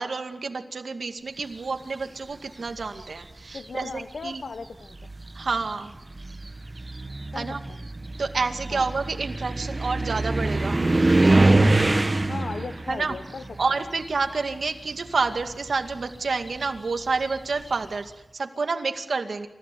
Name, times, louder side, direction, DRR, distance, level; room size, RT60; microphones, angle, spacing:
voice 1, 0.0-4.4 5.3-5.9 7.3-7.6 8.2-10.8 12.9-13.1 13.6-19.5, right 4 dB, 75° right, 6 dB, 2.2 m, -29 dB
sound 1, 2.7-3.2 4.2-4.3 4.9-14.8 15.1-17.7, right 2 dB, 35° right, 1.2 m, -25 dB
voice 2, 3.5-5.0 7.3-7.8 8.7-8.9 12.3-13.8, left 4 dB, 80° left, 9 dB, 1.0 m, -37 dB
28.0 x 15.5 x 9.5 m, 0.96 s
wide cardioid pair, 80°, 0 cm